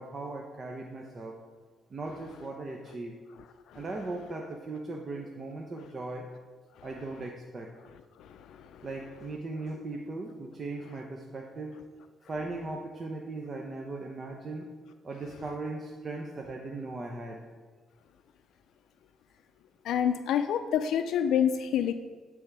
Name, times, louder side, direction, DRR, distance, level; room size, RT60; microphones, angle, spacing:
voice 1, 0.0-1.3 1.9-3.2 3.7-6.3 6.8-7.7 8.8-11.8 12.3-14.7 15.0-17.4, right 2 dB, 40° right, 1 dB, 0.8 m, -38 dB
voice 2, 8.2-8.9 19.8-21.9, left 9 dB, 80° left, 9 dB, 0.3 m, -28 dB
9.7 x 3.5 x 6.0 m, 1.5 s
cardioid pair, 90°, 0 cm